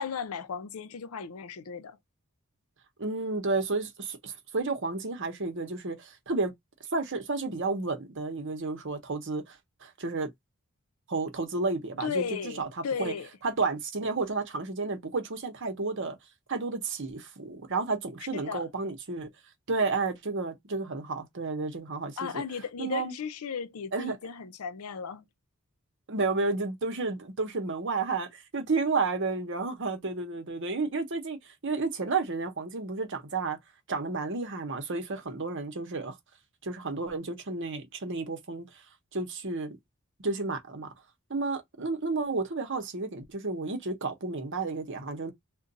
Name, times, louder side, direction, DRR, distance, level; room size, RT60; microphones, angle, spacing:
voice 1, 0.0-2.0 12.0-13.3 18.3-18.7 22.2-25.2, left 6 dB, 75° left, 0.5 m, -35 dB
voice 2, 3.0-6.5 6.9-10.3 11.1-12.7 13.0-13.1 13.4-16.2 16.5-19.3 19.7-22.4 22.8-23.1 23.9-24.2 26.1-33.6 33.9-36.2 36.6-38.7 39.1-39.8 40.2-40.9 41.3-45.3, right 3 dB, 60° right, 0.9 m, -31 dB
2.5 x 2.2 x 3.9 m
head